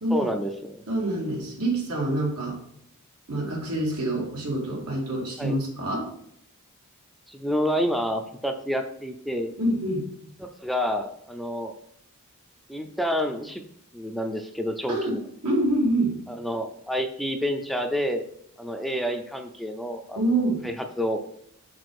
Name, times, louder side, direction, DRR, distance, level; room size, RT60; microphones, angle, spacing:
voice 1, 0.1-0.8 5.4-5.6 7.3-9.5 10.4-11.7 12.7-13.6 13.9-15.3 16.3-18.3 18.6-20.2 20.6-21.2, equal, ahead, 5 dB, 0.4 m, -29 dB
voice 2, 0.9-2.6 3.3-6.0 9.6-10.0 14.9-15.2 15.4-16.1 20.2-20.6, right 1 dB, 85° right, -1 dB, 2.1 m, -26 dB
6.0 x 5.0 x 4.8 m, 0.70 s
head